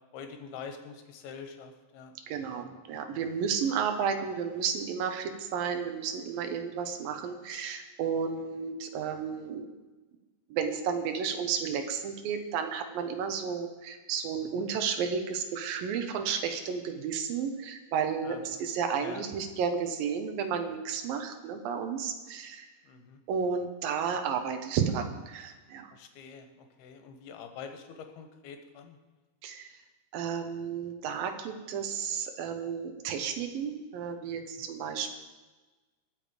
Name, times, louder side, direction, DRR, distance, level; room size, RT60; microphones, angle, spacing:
voice 1, 0.1-2.1 2.6-2.8 14.6-14.7 18.2-18.6 19.0-19.3 22.8-23.2 25.9-29.0 34.6-34.7, left 6 dB, 70° left, 6 dB, 3.0 m, -45 dB
voice 2, 2.3-9.7 10.5-22.7 23.3-25.9 29.4-29.7 30.1-35.1, right 6 dB, 70° right, 6 dB, 2.6 m, -32 dB
21.5 x 7.2 x 5.1 m, 1.3 s
omnidirectional pair, 5.0 m